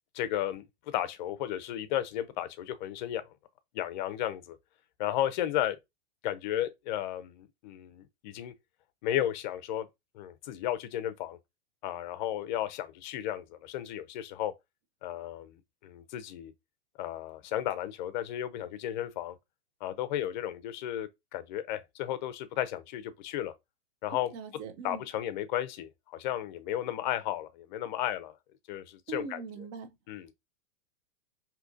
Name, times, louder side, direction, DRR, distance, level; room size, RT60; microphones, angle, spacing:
voice 1, 0.1-3.3 3.7-4.6 5.0-5.8 6.2-8.5 9.0-9.9 10.1-11.4 11.8-14.5 15.0-16.5 17.0-19.4 19.8-23.5 24.0-24.3 24.8-28.4 28.7-29.7 30.1-30.3, left 12 dB, 45° left, 0.5 m, -34 dB
voice 2, 24.3-25.0 29.1-29.9, right 6 dB, 30° right, 0.5 m, -41 dB
2.8 x 2.4 x 3.8 m
hypercardioid pair, 135°, 33 cm